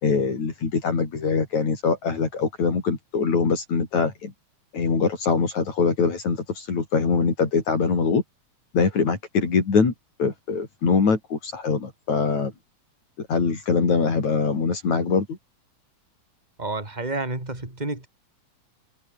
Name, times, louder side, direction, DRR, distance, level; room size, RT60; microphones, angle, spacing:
voice 1, 0.0-4.3 4.7-8.2 8.7-9.9 10.2-12.5 13.3-15.4, left 5 dB, 70° left, 5.9 m, -23 dB
voice 2, 16.6-18.1, right 2 dB, 15° right, 4.3 m, -30 dB
omnidirectional pair, 3.3 m